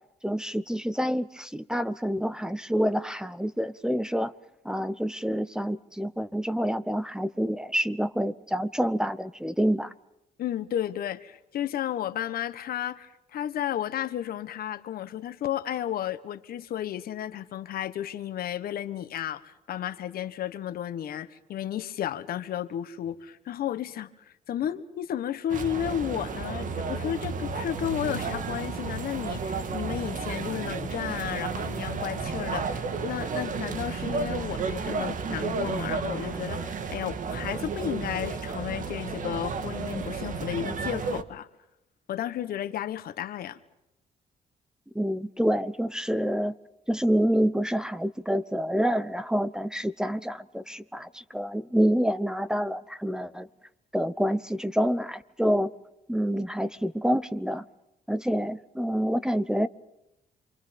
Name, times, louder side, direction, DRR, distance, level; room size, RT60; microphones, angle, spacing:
voice 1, 0.2-4.3 4.6-9.9 44.9-46.5 46.9-53.5 53.9-55.7 56.1-57.6 58.1-59.7, equal, 5° right, 0.9 m, -27 dB
voice 2, 10.4-24.1 24.5-41.5 42.1-43.6, left 10 dB, 75° left, 1.4 m, -33 dB
sound 1, 25.5-41.2, right 5 dB, 55° right, 1.8 m, -32 dB
29.0 x 24.5 x 5.3 m
cardioid pair, 100°, 16 cm